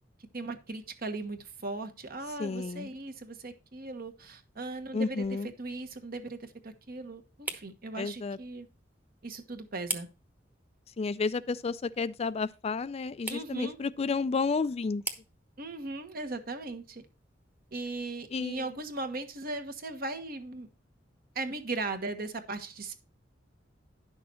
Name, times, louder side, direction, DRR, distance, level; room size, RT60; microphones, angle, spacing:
voice 1, 0.3-8.7 9.2-10.1 13.3-13.8 15.6-17.0 17.7-20.7 21.3-22.9, right 2 dB, 55° right, 1.4 m, -38 dB
voice 2, 2.4-2.9 4.9-5.5 8.0-8.4 11.0-15.0 18.3-18.7, left 4 dB, 35° left, 0.4 m, -31 dB
sound 1, 3.9-18.7, right 2 dB, 10° right, 1.1 m, -47 dB
10.5 x 6.3 x 4.3 m
head